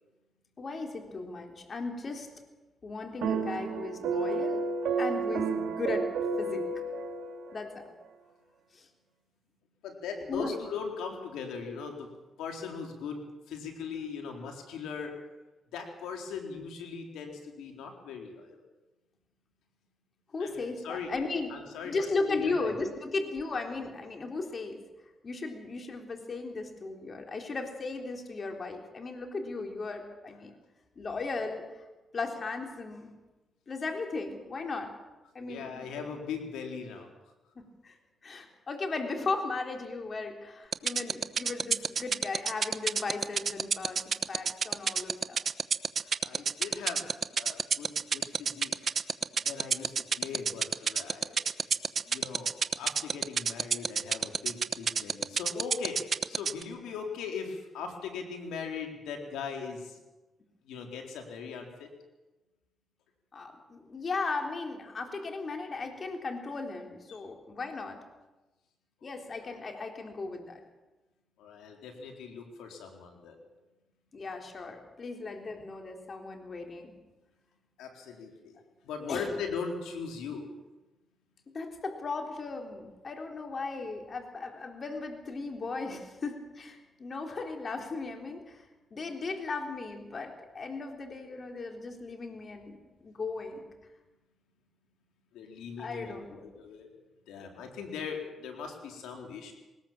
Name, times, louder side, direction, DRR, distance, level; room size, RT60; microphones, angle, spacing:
voice 1, 0.6-2.3 2.8-4.6 5.0-6.1 6.4-6.7 7.5-8.0 8.7-8.9 10.3-10.6 20.3-24.8 25.2-30.5 31.0-31.8 32.1-33.1 33.7-34.9 35.3-35.9 37.6-38.0 38.2-45.4 63.3-68.0 69.0-70.6 74.1-76.9 79.1-79.3 81.5-88.6 88.9-93.7 95.8-96.5, left 3 dB, 45° left, 4 dB, 3.9 m, -36 dB
sound 1, 3.2-7.7, right 4 dB, 80° right, 2.2 m, -31 dB
voice 2, 9.8-12.1 12.4-13.2 13.5-15.1 15.7-18.6 20.4-21.1 21.5-22.7 35.4-37.1 46.2-47.0 47.3-48.9 49.4-51.4 52.1-56.0 56.3-60.0 60.7-61.9 67.1-67.2 69.0-69.4 71.4-73.4 77.8-78.6 78.8-80.5 95.3-96.9 97.3-99.5, left 6 dB, 90° left, 3 dB, 3.9 m, -39 dB
sound 2, 40.7-56.6, right 6 dB, 55° right, 1.0 m, -27 dB
20.0 x 19.5 x 7.4 m, 1.1 s
cardioid pair, 65°, 0 cm